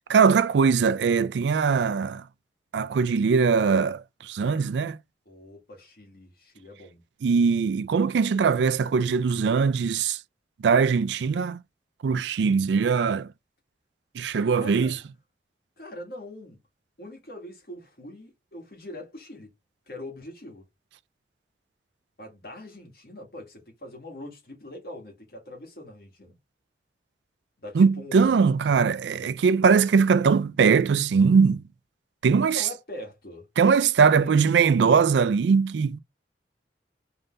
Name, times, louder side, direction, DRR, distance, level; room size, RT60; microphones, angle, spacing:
voice 1, 0.1-2.2 2.7-5.0 7.2-10.2 10.6-11.6 12.0-13.3 14.1-15.0 27.7-31.7 32.2-32.7 33.6-36.0, right 5 dB, 85° right, 0.4 m, -21 dB
voice 2, 5.3-7.0 14.3-15.0 15.8-16.6 17.0-19.5 19.9-20.6 22.2-26.4 27.6-28.4 32.5-33.5 34.0-34.3, left 1 dB, 60° left, 2.1 m, -42 dB
3.8 x 3.8 x 2.6 m
head